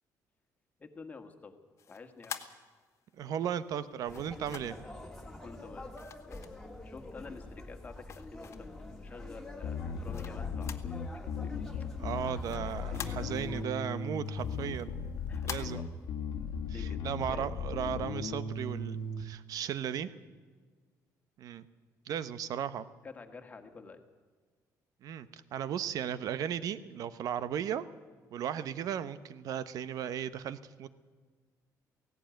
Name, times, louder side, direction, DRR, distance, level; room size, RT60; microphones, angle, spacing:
voice 1, 0.8-1.5 1.9-2.4 5.4-5.9 6.8-11.6 15.3-15.9 16.7-17.0 17.3-17.5 23.0-24.0, left 4 dB, 20° left, 5 dB, 1.8 m, -49 dB
sound 1, 1.8-3.2 4.0-4.9 5.9-7.0 7.5-8.9 9.4-11.0 11.3-11.4 11.7-13.6 14.0-15.6, left 8 dB, 45° left, 1.3 m, -46 dB
voice 2, 3.2-4.8 12.0-14.9 15.5-15.9 16.7-20.1 21.4-21.7 22.1-22.9 25.0-27.8 28.3-30.9, right 9 dB, 60° right, 15 dB, 1.0 m, -36 dB
sound 2, 4.0-13.6, left 1 dB, 5° left, 2.1 m, -46 dB
Bass guitar, 9.6-19.2, left 4 dB, 90° left, 1.6 m, -37 dB
17.0 x 17.0 x 9.1 m, 1.5 s
cardioid pair, 150°, 7 cm